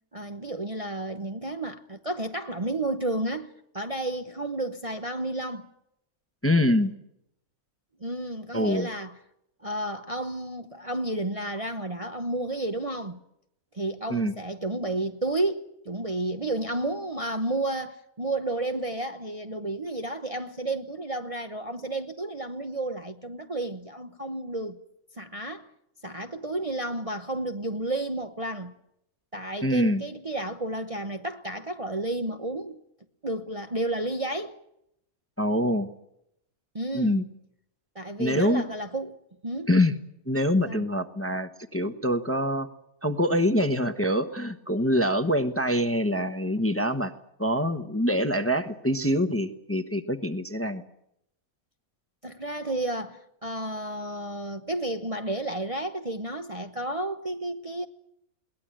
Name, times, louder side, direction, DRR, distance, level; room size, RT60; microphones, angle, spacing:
voice 1, 0.1-5.7 8.0-9.1 9.6-13.2 13.7-24.8 25.2-25.7 26.0-28.7 29.3-32.8 33.2-34.6 36.7-37.3 37.9-39.2 39.4-39.7 40.7-40.8 52.2-57.9, right 1 dB, 25° right, 0.9 m, -32 dB
voice 2, 6.4-6.9 8.5-8.9 14.1-14.3 29.6-30.0 35.4-35.9 36.9-37.2 38.2-38.6 39.7-39.9 40.3-42.7 43.0-47.1 47.4-50.8, equal, 10° left, 0.9 m, -25 dB
22.0 x 19.0 x 8.9 m
omnidirectional pair, 1.5 m